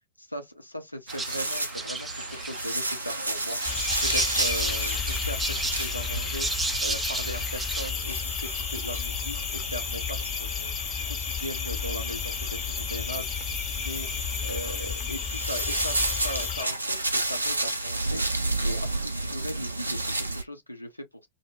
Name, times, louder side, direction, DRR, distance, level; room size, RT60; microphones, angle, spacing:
voice 1, 0.2-6.5 6.8-14.1 14.4-21.1, equal, 90° left, 0.5 m, -38 dB
sound 1, 1.1-7.9, right 3 dB, 10° right, 0.4 m, -33 dB
sound 2, 1.1-20.4, right 2 dB, 80° right, 0.4 m, -32 dB
sound 3, 3.6-16.6, left 6 dB, 30° left, 0.7 m, -32 dB
2.1 x 2.0 x 3.1 m
figure-of-eight pair, 90°, 0 cm